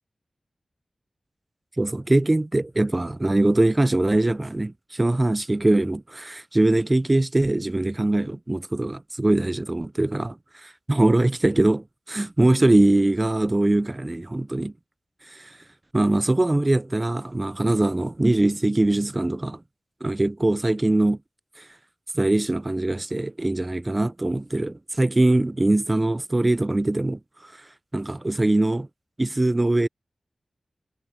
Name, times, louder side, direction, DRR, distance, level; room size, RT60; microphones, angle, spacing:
voice 1, 1.8-14.7 15.3-15.6 15.9-19.6 20.0-21.2 21.6-21.7 22.1-27.5 27.9-28.9 29.2-29.9, right 2 dB, 25° right, 0.3 m, -22 dB
wide cardioid pair, 75°, 0 cm